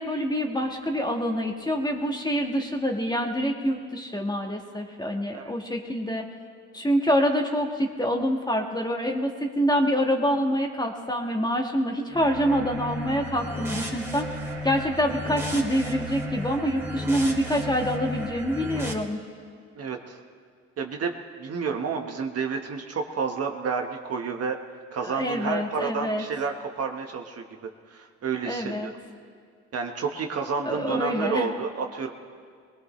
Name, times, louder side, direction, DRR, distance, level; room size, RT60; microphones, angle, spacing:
voice 1, 0.0-6.2 6.7-14.4 14.6-19.2 25.0-26.2 28.5-28.9 30.7-31.5, equal, 15° left, 2 dB, 1.6 m, -26 dB
sound 1, 12.1-18.9, equal, 10° right, 2.5 m, -34 dB
voice 2, 19.8-20.2 20.8-24.6 24.9-28.9 29.7-32.1, right 5 dB, 55° right, 3 dB, 1.4 m, -30 dB
21.0 x 20.0 x 3.2 m, 2.1 s
cardioid pair, 90°, 30 cm